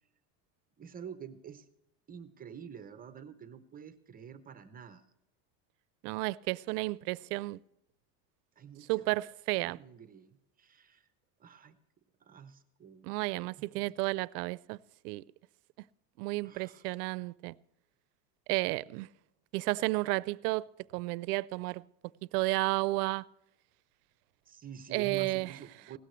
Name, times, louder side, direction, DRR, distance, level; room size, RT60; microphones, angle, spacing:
voice 1, 0.8-1.7 2.1-5.1 6.0-6.3 8.6-9.1 9.6-11.1 11.4-11.8 12.2-13.1 13.6-13.9 16.4-16.8 24.5-26.0, right 7 dB, 20° right, 0.5 m, -48 dB
voice 2, 6.0-7.6 8.9-9.8 13.0-14.8 15.0-15.2 16.2-17.5 18.5-19.1 19.5-20.7 20.9-21.8 22.3-23.2 24.9-25.5, right 21 dB, 85° right, 0.5 m, -32 dB
16.5 x 13.0 x 3.1 m
supercardioid pair, 140°, 46 cm